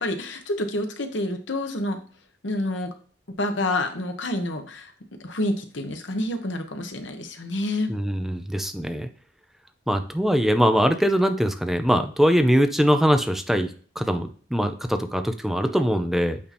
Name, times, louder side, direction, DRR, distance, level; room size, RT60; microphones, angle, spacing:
voice 1, 0.0-2.0 2.4-2.9 3.4-4.9 5.2-7.9, left 1 dB, 70° left, 5 dB, 1.1 m, -28 dB
voice 2, 7.9-9.1 9.9-16.4, equal, ahead, 7 dB, 0.6 m, -22 dB
8.5 x 2.8 x 4.2 m, 0.43 s
head